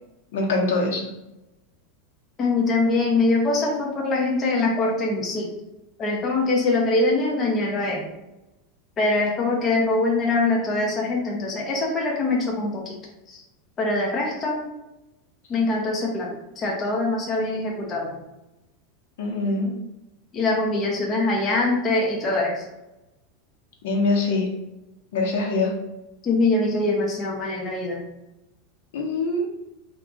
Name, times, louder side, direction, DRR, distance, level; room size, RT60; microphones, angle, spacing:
voice 1, 0.3-1.0 19.2-19.7 23.8-24.5 25.1-25.7 28.9-29.4, left 3 dB, 70° left, 0 dB, 0.9 m, -23 dB
voice 2, 2.4-5.5 6.0-8.1 9.0-12.9 13.3-13.4 13.8-14.6 15.5-18.2 20.3-22.6 26.2-28.0, left 2 dB, 20° left, -2 dB, 0.5 m, -23 dB
2.8 x 2.4 x 3.6 m, 0.96 s
supercardioid pair, 170°, 0 cm